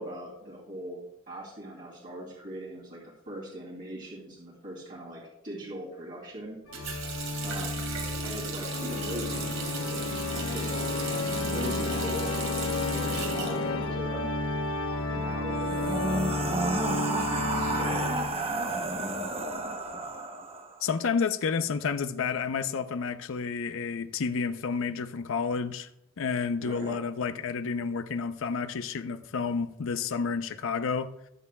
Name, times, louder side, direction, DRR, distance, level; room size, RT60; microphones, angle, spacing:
voice 1, 0.0-3.0 3.3-6.6 7.4-7.8 8.2-10.1 10.5-10.7 11.2-14.3 15.1-18.6 26.6-27.0, right 1 dB, 45° right, -5 dB, 2.7 m, -40 dB
Organ, 6.7-18.5, left 2 dB, 90° left, 0.9 m, -31 dB
Water tap faucet, 6.7-14.5 14.8-15.8, right 6 dB, 70° right, 2.7 m, -38 dB
sound 1, 15.5-20.8, right 2 dB, 30° right, 0.8 m, -31 dB
voice 2, 20.8-25.9 26.2-31.1, left 5 dB, 65° left, 10 dB, 0.5 m, -30 dB
20.5 x 6.8 x 2.2 m, 0.82 s
head